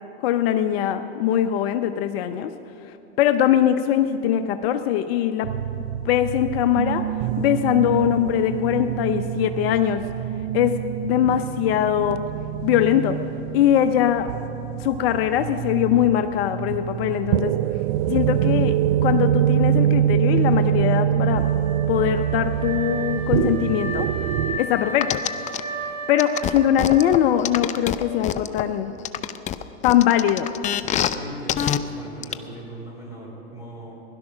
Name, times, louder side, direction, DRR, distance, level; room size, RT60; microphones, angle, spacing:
voice 1, 0.2-2.5 3.2-5.5 6.1-7.1 7.4-10.0 10.5-12.2 12.6-13.2 13.5-14.3 14.8-17.6 18.1-21.4 21.9-24.1 24.6-25.2 26.1-28.9 29.8-30.5, left 11 dB, 60° left, 8 dB, 0.7 m, -21 dB
sound 1, 5.4-24.6, right 11 dB, 65° right, 0.5 m, -25 dB
Wind instrument woodwind instrument, 21.2-28.2, right 2 dB, 25° right, 4.3 m, -34 dB
sound 2, 25.0-25.6 26.2-28.6 29.0-31.2 31.5-31.8 32.2-32.3, left 11 dB, 20° left, 0.4 m, -25 dB
voice 2, 30.9-33.9, right 1 dB, 10° right, -3 dB, 4.2 m, -38 dB
16.5 x 11.5 x 6.2 m, 2.8 s
hypercardioid pair, 120°, 35 cm